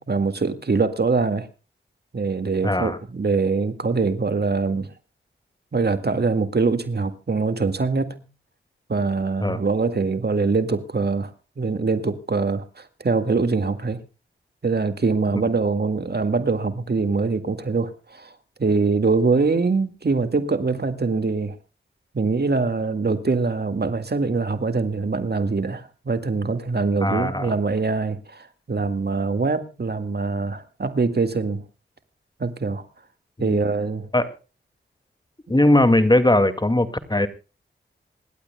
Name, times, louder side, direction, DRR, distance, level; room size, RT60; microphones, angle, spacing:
voice 1, 0.0-1.5 2.1-4.9 5.7-8.2 8.9-11.3 11.6-14.0 14.6-18.3 18.6-21.6 22.1-31.6 32.4-32.8 33.4-34.1, right 4 dB, 50° right, 9 dB, 2.0 m, -23 dB
voice 2, 2.6-3.0 9.4-9.6 15.3-15.5 27.0-27.5 33.4-33.6 34.1-34.3 35.5-37.3, left 1 dB, 20° left, 10 dB, 2.1 m, -19 dB
27.0 x 12.0 x 2.2 m, 0.33 s
cardioid pair, 45°, 21 cm